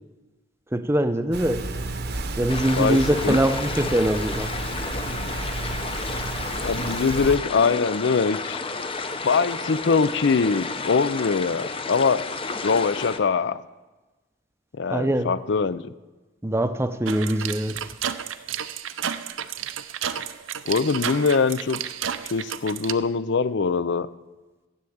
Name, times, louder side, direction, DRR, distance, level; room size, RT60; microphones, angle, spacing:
voice 1, 0.7-1.6 2.4-4.5 14.9-15.3 16.4-17.8, right 1 dB, 15° right, 9 dB, 0.6 m, -23 dB
sound 1, 1.3-7.4, right 2 dB, 55° right, 0.9 m, -32 dB
sound 2, 2.5-13.2, left 4 dB, 30° left, 0.7 m, -32 dB
voice 2, 2.8-3.4 6.6-8.6 9.2-12.3 12.6-13.6 14.7-15.8 20.7-21.8 22.3-24.1, left 5 dB, 65° left, 16 dB, 0.5 m, -23 dB
sound 3, 17.1-22.9, right 8 dB, 80° right, 0.6 m, -31 dB
13.0 x 7.8 x 8.6 m, 1.2 s
head